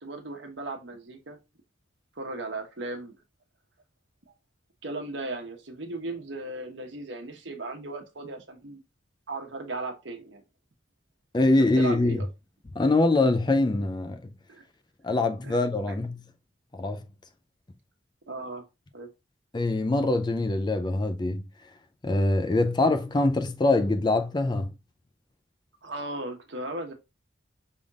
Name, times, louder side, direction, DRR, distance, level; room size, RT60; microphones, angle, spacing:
voice 1, 0.0-1.4 2.2-3.2 4.8-8.8 9.3-10.4 11.8-12.3 14.5-14.6 15.4-15.6 15.9-16.0 18.3-18.6 18.9-19.1 25.8-26.9, right 2 dB, 70° right, 1.1 m, -36 dB
voice 2, 11.3-12.2 12.7-14.3 15.0-16.2 16.7-17.0 19.5-21.5 22.0-24.7, left 2 dB, 25° left, 0.4 m, -24 dB
5.5 x 3.5 x 2.4 m
head